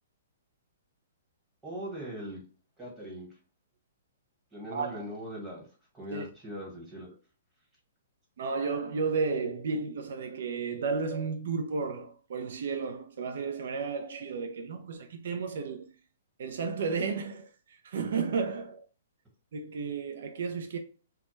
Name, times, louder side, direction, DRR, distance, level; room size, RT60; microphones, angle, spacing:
voice 1, 1.6-2.4 2.8-3.3 4.5-5.6 5.9-7.1, equal, 10° right, 1.2 m, -40 dB
voice 2, 8.4-15.9 16.4-18.8 19.5-20.8, right 5 dB, 65° right, 0.4 m, -33 dB
2.2 x 2.0 x 3.0 m
hypercardioid pair, 145°, 0 cm